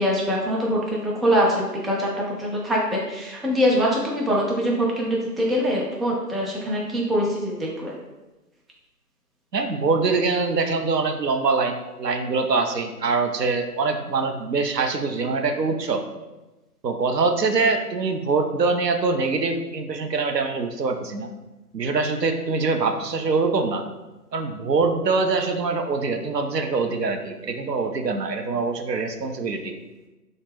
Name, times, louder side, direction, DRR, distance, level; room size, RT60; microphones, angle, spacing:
voice 1, 0.0-7.9, equal, ahead, -3 dB, 0.4 m, -23 dB
voice 2, 9.5-16.1 16.8-21.3 21.7-23.8 24.3-29.7, right 4 dB, 80° right, 6 dB, 0.6 m, -24 dB
3.5 x 2.1 x 3.3 m, 1.1 s
figure-of-eight pair, 165°, 49 cm